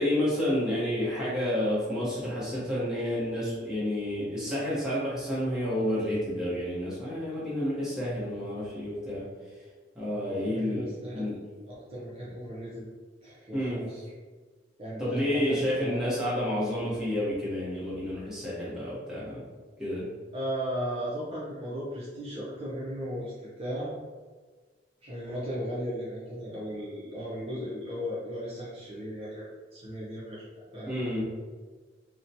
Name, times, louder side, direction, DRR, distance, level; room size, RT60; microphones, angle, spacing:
voice 1, 0.0-9.3 9.9-11.4 13.5-13.8 15.0-19.4 19.8-20.1 30.9-31.2, left 1 dB, 5° right, -9 dB, 0.8 m, -30 dB
voice 2, 10.1-11.4 11.7-12.9 13.2-14.0 14.8-16.1 20.3-23.9 25.0-30.9, equal, 35° right, -7 dB, 0.5 m, -36 dB
2.8 x 2.1 x 2.6 m, 1.4 s
head